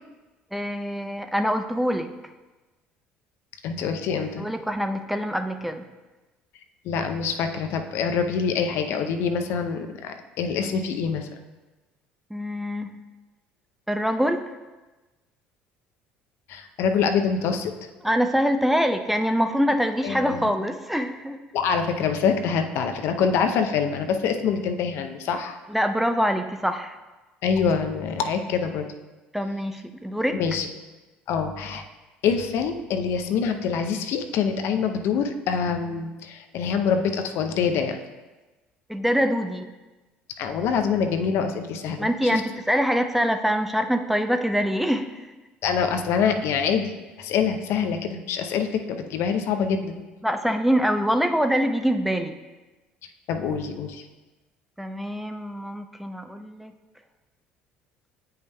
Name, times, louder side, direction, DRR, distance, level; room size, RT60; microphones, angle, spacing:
voice 1, 0.5-2.1 4.4-5.8 12.3-13.0 13.9-14.5 18.0-21.4 25.7-27.0 29.3-30.4 38.9-39.7 42.0-45.2 50.2-52.4 54.8-56.7, equal, 5° right, 7 dB, 0.4 m, -24 dB
voice 2, 3.6-4.5 6.8-11.3 16.5-17.7 20.0-20.5 21.5-25.6 27.4-28.9 30.3-30.7 31.3-31.8 32.2-38.0 40.4-42.4 45.6-46.9 47.2-50.0 53.3-54.0, left 6 dB, 60° left, 6 dB, 0.6 m, -25 dB
8.9 x 5.5 x 2.2 m, 1.2 s
hypercardioid pair, 60°, 5 cm